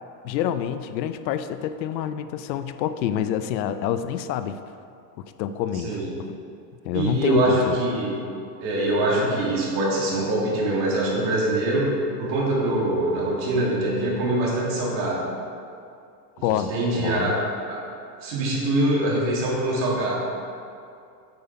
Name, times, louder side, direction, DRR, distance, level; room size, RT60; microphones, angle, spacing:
voice 1, 0.2-4.6 5.4-6.0 6.8-7.8 16.4-17.3, left 10 dB, 85° left, 10 dB, 0.6 m, -27 dB
voice 2, 6.9-8.2 8.6-11.9 12.2-15.3 16.7-17.4 17.7-17.8 18.2-20.2, right 1 dB, 40° right, -4 dB, 1.9 m, -23 dB
7.7 x 5.7 x 4.3 m, 2.5 s
supercardioid pair, 160°, 50 cm